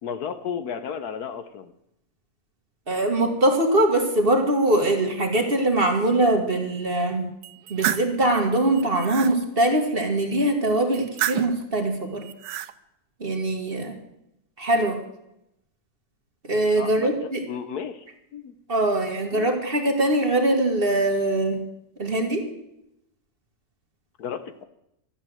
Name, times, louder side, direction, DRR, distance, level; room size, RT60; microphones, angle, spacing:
voice 1, 0.0-1.7 16.8-17.1 17.5-18.1 18.3-18.5 19.3-19.5 24.2-24.7, left 7 dB, 65° left, 11 dB, 1.2 m, -33 dB
voice 2, 2.9-7.3 7.7-12.3 13.2-14.0 14.6-15.0 16.4-17.4 18.7-21.6 22.0-22.5, right 1 dB, 35° right, 4 dB, 1.8 m, -22 dB
sound 1, 7.4-8.1 8.7-9.3 10.9-11.6 12.2-12.7, right 11 dB, 80° right, 1.3 m, -29 dB
13.0 x 8.9 x 7.7 m, 0.83 s
omnidirectional pair, 1.8 m